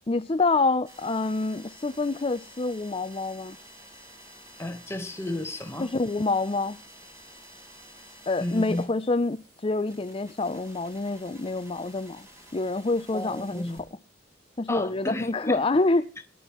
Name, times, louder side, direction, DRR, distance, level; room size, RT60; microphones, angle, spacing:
voice 1, 0.1-3.6 5.8-6.8 8.3-12.3 12.5-13.7 14.6-16.1, left 3 dB, 30° left, 0.6 m, -27 dB
sound 1, 0.8-14.3 14.6-15.6, equal, 15° right, 4.7 m, -51 dB
voice 2, 4.6-5.9 8.4-8.9 13.1-13.8 14.7-15.7, left 1 dB, 15° left, 1.2 m, -33 dB
21.5 x 11.0 x 3.1 m
head